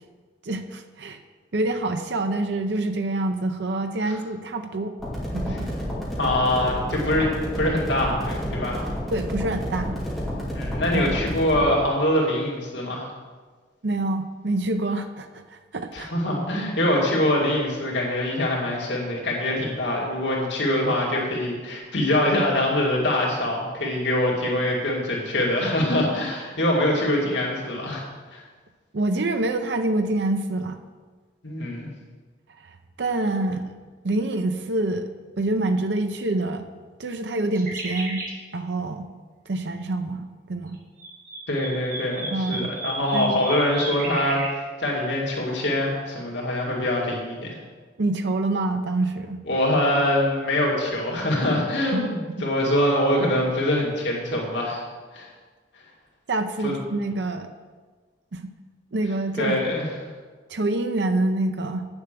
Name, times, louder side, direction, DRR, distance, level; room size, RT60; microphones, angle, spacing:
voice 1, 0.4-1.2 1.5-4.9 5.3-5.7 9.1-10.0 10.9-11.2 13.8-16.1 28.9-30.8 32.6-33.8 34.0-35.1 35.4-36.7 37.0-38.2 38.5-39.1 39.5-40.8 42.3-42.7 43.1-43.4 48.0-49.4 51.9-52.1 56.3-57.5 58.3-58.4 58.9-59.6 60.5-61.9, right 2 dB, 75° right, 7 dB, 0.6 m, -26 dB
sound 1, 5.0-11.7, equal, ahead, 2.5 m, -30 dB
voice 2, 6.2-8.9 10.5-13.1 15.9-28.0 28.3-28.4 31.4-31.9 41.5-47.5 49.5-54.8 55.1-55.3 56.6-56.7 59.4-59.9, left 1 dB, 85° left, -3 dB, 2.3 m, -24 dB
sound 2, 37.5-38.3 40.7-44.5, right 2 dB, 50° right, 2.1 m, -33 dB
8.9 x 7.1 x 6.7 m, 1.4 s
head